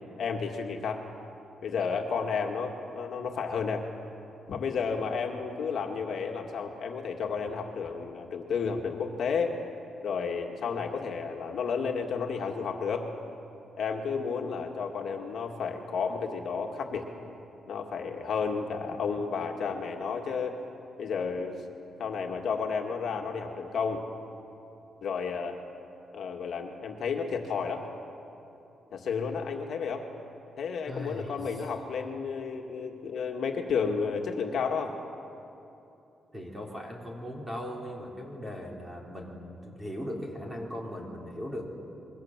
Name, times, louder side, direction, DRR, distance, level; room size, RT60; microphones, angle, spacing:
voice 1, 0.2-1.0 1.6-3.9 4.5-9.5 10.0-13.1 13.8-17.1 17.7-20.6 21.0-21.6 22.0-24.0 25.0-25.6 26.1-27.8 28.9-30.1 30.6-34.9, left 5 dB, 60° left, 2 dB, 2.0 m, -32 dB
voice 2, 30.9-31.4 36.3-41.6, equal, 10° right, -1 dB, 3.7 m, -38 dB
27.0 x 22.5 x 7.5 m, 2.9 s
wide cardioid pair, 160°, 0 cm